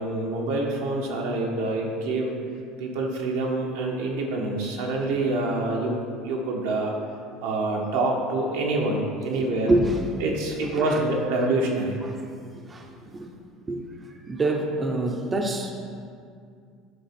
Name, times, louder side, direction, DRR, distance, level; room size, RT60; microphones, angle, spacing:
voice 1, 0.0-2.3 2.8-6.9 7.4-9.7 10.2-12.0, right 2 dB, 85° right, -1 dB, 1.4 m, -26 dB
voice 2, 9.4-10.1 10.6-11.0 12.0-12.3 12.7-13.3 13.7-13.8 14.3-15.7, right 2 dB, 25° right, 2 dB, 0.7 m, -26 dB
9.1 x 3.9 x 6.0 m, 2.3 s
supercardioid pair, 115°, 0 cm